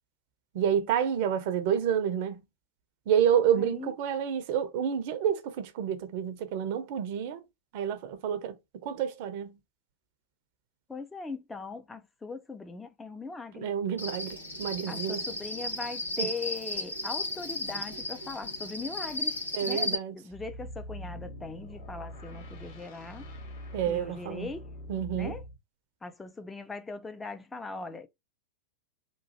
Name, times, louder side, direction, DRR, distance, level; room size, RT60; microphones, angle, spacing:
voice 1, 0.5-2.4 3.1-7.4 7.7-9.6 13.5-15.2 16.2-16.3 19.5-20.1 23.7-24.5 24.9-25.3, right 9 dB, 50° right, 0.5 m, -29 dB
voice 2, 3.6-3.9 10.9-13.7 14.9-19.3 19.6-23.3 23.9-24.7 25.1-25.4 26.0-28.1, left 3 dB, 10° left, 0.3 m, -40 dB
Cricket, 14.0-19.9, left 1 dB, 85° left, 1.1 m, -34 dB
sound 1, 20.3-25.6, equal, 55° left, 1.3 m, -43 dB
3.0 x 2.3 x 2.6 m
figure-of-eight pair, 90°, 0 cm